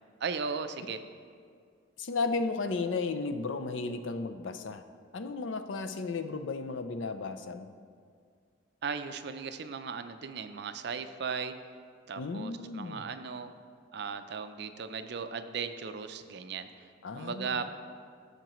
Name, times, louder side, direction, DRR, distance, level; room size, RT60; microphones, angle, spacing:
voice 1, 0.2-1.0 8.8-11.5 12.1-13.5 13.9-16.9 17.1-17.7, right 5 dB, 60° right, 9 dB, 0.5 m, -37 dB
voice 2, 2.0-4.8 5.1-7.7 12.2-13.0 17.0-17.7, left 4 dB, 85° left, 9 dB, 0.5 m, -34 dB
13.5 x 6.6 x 3.0 m, 2.1 s
head